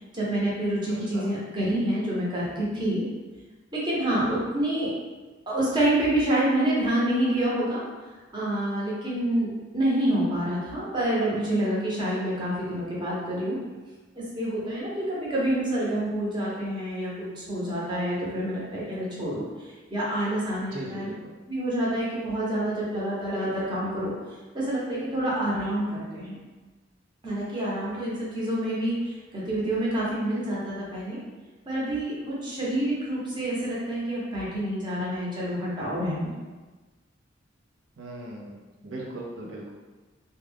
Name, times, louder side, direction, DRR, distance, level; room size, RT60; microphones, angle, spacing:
voice 1, 0.1-3.0 3.7-4.9 5.5-7.8 8.3-13.6 14.2-19.4 19.9-21.1 21.5-24.1 24.5-26.3 27.2-31.2 31.7-36.3, right 1 dB, 25° right, -7 dB, 0.8 m, -27 dB
voice 2, 0.9-1.4 20.7-21.3 38.0-39.7, right 2 dB, 85° right, -3 dB, 0.5 m, -39 dB
2.3 x 2.2 x 3.3 m, 1.3 s
head